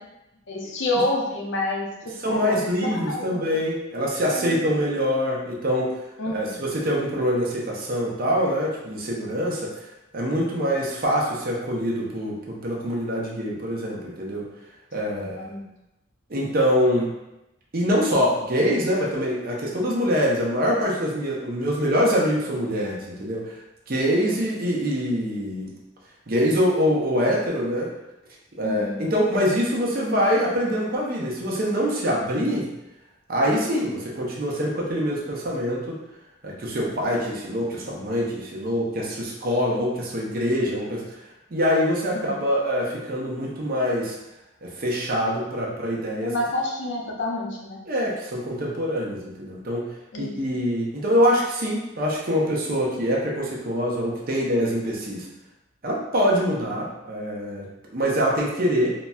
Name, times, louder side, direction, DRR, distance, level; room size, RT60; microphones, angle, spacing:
voice 1, 0.5-3.6 4.3-4.6 6.2-6.6 15.1-15.6 28.6-29.0 42.1-42.3 46.2-47.8 50.1-50.4, left 1 dB, 60° left, -1 dB, 0.6 m, -29 dB
voice 2, 2.2-5.9 6.3-9.7 10.1-14.5 14.9-15.5 16.3-17.1 17.7-23.6 23.9-25.7 26.3-27.9 28.6-32.7 33.3-36.0 36.4-41.2 41.5-44.2 44.6-46.3 47.9-49.9 50.2-55.3 55.8-58.9, equal, 45° right, -3 dB, 0.6 m, -24 dB
4.0 x 2.1 x 2.3 m, 0.93 s
head